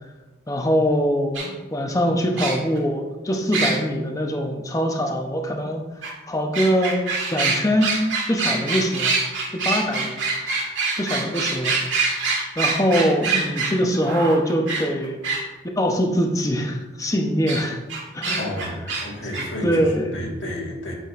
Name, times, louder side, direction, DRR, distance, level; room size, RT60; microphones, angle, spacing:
voice 1, 0.5-5.8 6.3-7.0 7.3-8.0 8.3-9.1 9.5-11.8 12.6-15.2 15.8-17.8 18.1-18.4 19.6-20.2, equal, 15° left, 2 dB, 0.8 m, -23 dB
sound 1, 1.3-1.5 2.4-2.8 3.5-3.8 6.0-6.1 6.5-15.4 17.5-17.6 17.9-19.0 19.3-19.4, right 4 dB, 80° right, 1.8 m, -24 dB
voice 2, 18.4-20.9, left 1 dB, 85° left, -1 dB, 1.7 m, -31 dB
8.1 x 7.1 x 2.5 m, 1.1 s
head